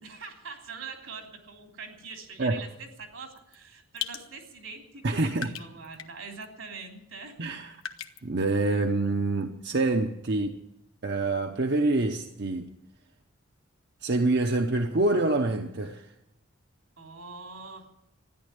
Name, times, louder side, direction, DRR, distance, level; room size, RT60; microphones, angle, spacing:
voice 1, 0.0-7.4 17.0-17.9, right 4 dB, 80° right, 3 dB, 3.2 m, -43 dB
sound 1, 3.4-3.6 4.0-4.2 5.0-5.1 5.4-6.1 6.4-6.5 7.8-8.2, left 9 dB, 85° left, 1.2 m, -37 dB
voice 2, 5.0-5.5 7.4-7.7 8.2-10.6 11.0-12.7 14.0-16.1, right 2 dB, 55° right, 4 dB, 0.8 m, -26 dB
14.0 x 10.5 x 9.9 m, 0.88 s
head